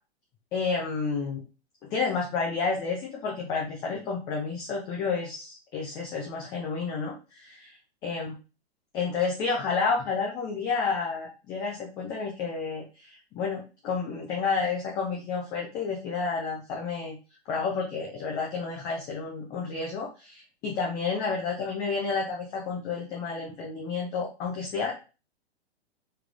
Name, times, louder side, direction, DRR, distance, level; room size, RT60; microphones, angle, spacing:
voice 1, 0.5-1.4 1.9-7.8 8.0-8.3 8.9-17.2 17.5-24.9, left 4 dB, 10° left, -2 dB, 0.3 m, -30 dB
3.5 x 3.2 x 2.3 m, 0.32 s
figure-of-eight pair, 110°, 33 cm